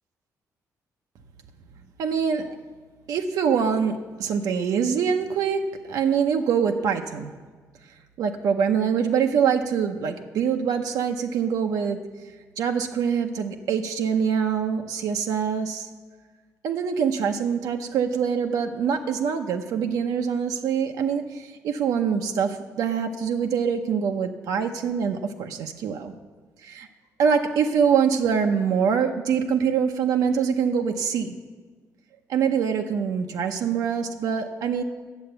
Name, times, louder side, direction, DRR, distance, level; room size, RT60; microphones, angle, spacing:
voice 1, 2.0-2.5 3.1-7.3 8.2-12.0 12.6-15.9 16.6-26.1 26.6-26.9 27.2-31.4 32.3-34.8, right 7 dB, 90° right, 5 dB, 0.8 m, -24 dB
10.0 x 7.7 x 8.0 m, 1.4 s
cardioid pair, 175°, 6 cm